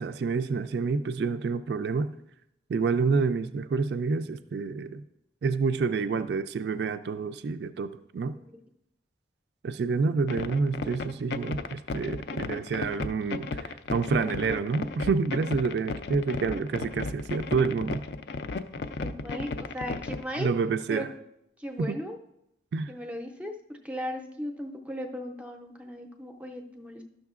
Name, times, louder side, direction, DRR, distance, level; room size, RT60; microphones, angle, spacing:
voice 1, 0.0-2.1 2.7-5.0 5.4-8.3 9.6-18.0 20.4-21.1 21.8-22.0 22.7-22.9, right 4 dB, 65° right, 11 dB, 0.3 m, -28 dB
sound 1, 10.3-20.2, left 3 dB, 60° left, 0.4 m, -34 dB
voice 2, 19.0-20.5 20.9-21.1 21.6-22.2 22.9-27.0, equal, 5° right, 4 dB, 0.5 m, -37 dB
12.0 x 6.3 x 2.4 m, 0.80 s
head